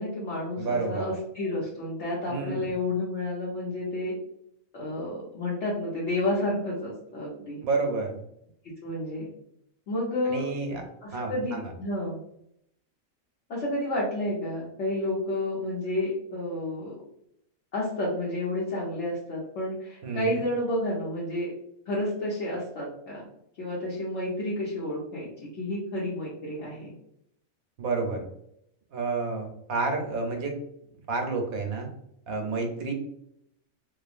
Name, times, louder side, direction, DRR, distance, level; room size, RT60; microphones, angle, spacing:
voice 1, 0.0-4.1 4.7-7.6 8.8-9.3 9.9-10.4 11.0-12.2 13.5-16.9 17.7-21.5 21.9-23.2 23.6-26.9, left 1 dB, 60° left, -6 dB, 0.9 m, -30 dB
voice 2, 0.6-1.1 2.3-2.7 7.6-8.2 10.2-10.8 11.1-11.7 20.0-20.4 27.8-28.3 28.9-30.5 31.1-31.9 32.3-32.9, right 3 dB, 80° right, 3 dB, 1.2 m, -30 dB
2.8 x 2.4 x 2.4 m, 0.75 s
omnidirectional pair, 1.4 m